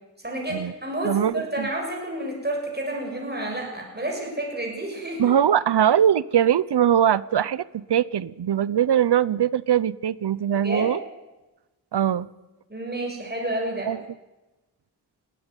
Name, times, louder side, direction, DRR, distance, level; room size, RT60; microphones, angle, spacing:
voice 1, 0.2-5.4 10.6-10.9 12.7-13.9, right 1 dB, 25° right, 0 dB, 7.1 m, -30 dB
voice 2, 1.0-1.7 5.2-11.0 11.9-12.3 13.9-14.0, right 9 dB, 80° right, 20 dB, 0.8 m, -21 dB
20.0 x 17.5 x 9.8 m, 1.0 s
wide cardioid pair, 75°, 40 cm